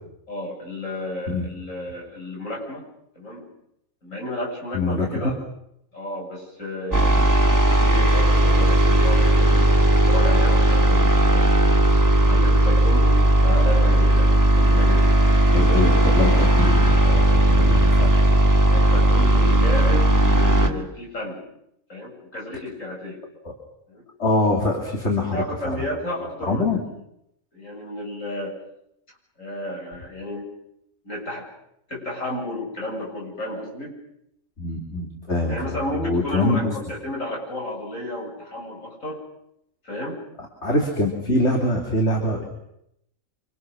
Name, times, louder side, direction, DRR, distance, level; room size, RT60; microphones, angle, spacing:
voice 1, 0.3-2.9 3.1-3.5 4.0-5.4 5.9-7.3 7.7-11.5 12.2-15.2 15.7-16.0 18.7-21.4 21.9-23.2 23.9-24.0 25.3-26.8 27.5-28.6 29.4-30.5 31.0-31.5 31.9-34.0 35.5-39.2 39.8-40.2, left 1 dB, 80° left, -2 dB, 8.0 m, -32 dB
voice 2, 4.7-5.3 14.6-14.8 15.5-18.1 23.5-23.6 24.2-25.8 26.5-26.8 34.6-36.7 40.6-42.5, left 2 dB, 55° left, 1 dB, 3.5 m, -24 dB
sound 1, 6.9-20.7, right 1 dB, 15° right, 2.4 m, -17 dB
27.0 x 27.0 x 6.4 m, 0.78 s
omnidirectional pair, 1.3 m